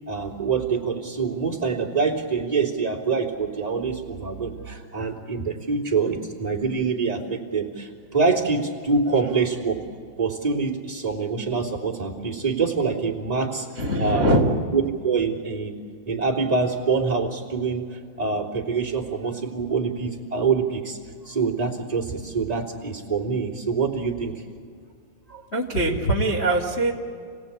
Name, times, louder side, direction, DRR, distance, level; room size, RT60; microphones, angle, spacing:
voice 1, 0.1-9.8 10.2-13.7 14.0-14.4 14.7-15.8 16.1-17.8 18.2-21.0 21.2-24.3 25.3-25.4, right 4 dB, 10° right, -5 dB, 2.1 m, -25 dB
voice 2, 13.8-14.5 25.5-26.9, right 1 dB, 35° left, -1 dB, 1.0 m, -22 dB
29.0 x 18.0 x 8.7 m, 2.2 s
omnidirectional pair, 5.0 m